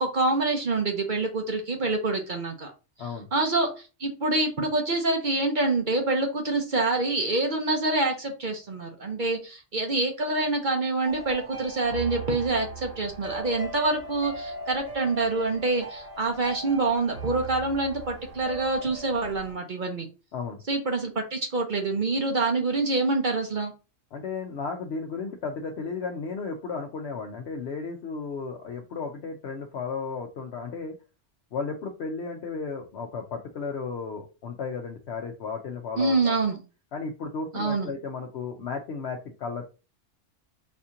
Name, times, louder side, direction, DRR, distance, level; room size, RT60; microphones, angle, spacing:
voice 1, 0.0-2.7 3.3-20.1 20.7-23.7 36.0-36.6 37.5-37.9, right 2 dB, 45° right, 2 dB, 0.8 m, -26 dB
sound 1, 11.0-19.5, right 2 dB, 80° right, 2.2 m, -39 dB
voice 2, 24.1-31.0 31.5-36.4 36.9-39.7, left 4 dB, 65° left, 2 dB, 0.9 m, -34 dB
4.3 x 2.8 x 3.6 m, 0.31 s
omnidirectional pair, 1.3 m